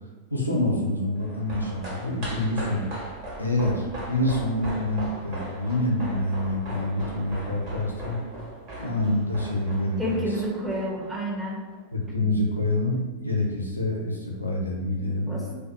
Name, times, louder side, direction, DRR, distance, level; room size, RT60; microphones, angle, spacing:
voice 1, 0.0-2.8 3.4-8.2 8.8-10.3 11.9-15.5, left 1 dB, 85° left, -2 dB, 0.4 m, -27 dB
sound 1, 1.2-11.7 12.0-12.1, right 1 dB, 40° right, 1.0 m, -39 dB
voice 2, 10.0-11.7 15.0-15.5, equal, 10° right, -3 dB, 0.5 m, -30 dB
2.2 x 2.1 x 2.7 m, 1.3 s
figure-of-eight pair, 90°, 0 cm